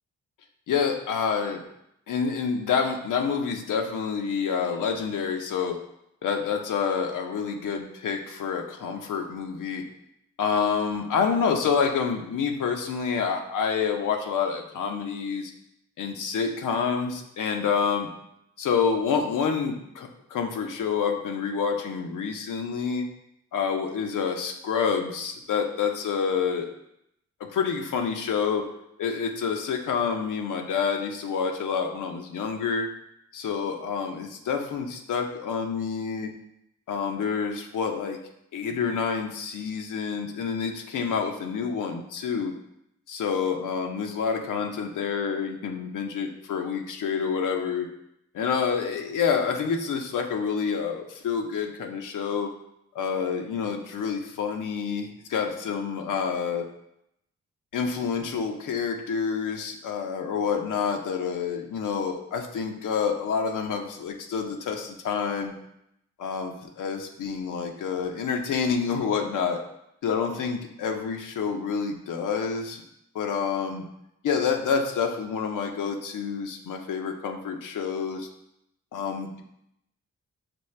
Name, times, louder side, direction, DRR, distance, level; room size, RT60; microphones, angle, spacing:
voice 1, 0.7-1.6 2.1-5.7 6.2-9.8 10.4-15.5 16.0-18.1 18.6-23.1 23.5-26.7 27.5-28.6 29.0-32.9 33.3-36.3 36.9-38.2 38.5-42.5 43.1-47.9 48.3-52.5 52.9-56.6 57.7-65.5 66.2-69.6 70.0-72.8 73.1-73.8 74.2-78.3 78.9-79.4, left 6 dB, 80° left, 4 dB, 0.6 m, -28 dB
6.0 x 2.3 x 3.2 m, 0.80 s
cardioid pair, 50°, 31 cm